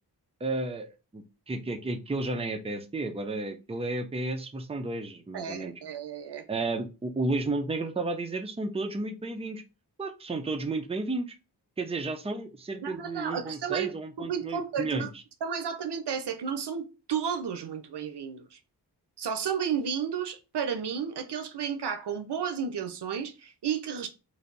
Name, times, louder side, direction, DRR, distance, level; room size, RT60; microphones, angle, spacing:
voice 1, 0.4-0.9 1.1-5.7 6.5-9.6 10.0-11.4 11.8-15.1, right 2 dB, 15° right, 0.5 m, -32 dB
voice 2, 5.3-6.4 12.8-13.9 14.2-15.1 15.4-18.6 19.2-24.1, right 7 dB, 75° right, 0.7 m, -32 dB
3.3 x 2.6 x 3.9 m
wide cardioid pair, 75°, 41 cm